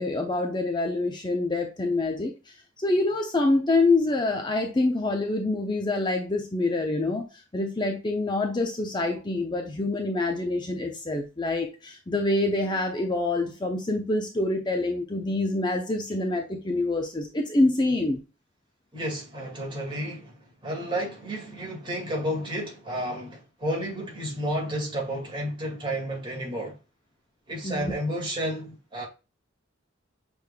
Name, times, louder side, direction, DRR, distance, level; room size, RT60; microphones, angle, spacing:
voice 1, 0.0-18.2 27.6-27.9, left 2 dB, 25° left, 0.7 m, -26 dB
voice 2, 18.9-20.3 20.6-26.8 27.5-29.1, equal, 25° right, 2.0 m, -31 dB
6.5 x 3.6 x 2.2 m
head